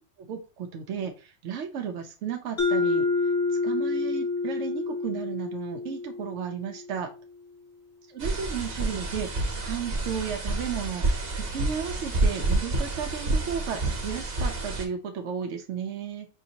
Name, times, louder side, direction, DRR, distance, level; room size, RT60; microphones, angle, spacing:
voice 1, 0.2-7.1 8.1-16.3, right 7 dB, 80° right, 4 dB, 0.9 m, -34 dB
Mallet percussion, 2.6-7.1, left 4 dB, 60° left, 1.3 m, -28 dB
sound 1, 8.2-14.9, right 2 dB, 55° right, 1.3 m, -29 dB
5.6 x 2.6 x 2.8 m, 0.33 s
omnidirectional pair, 1.2 m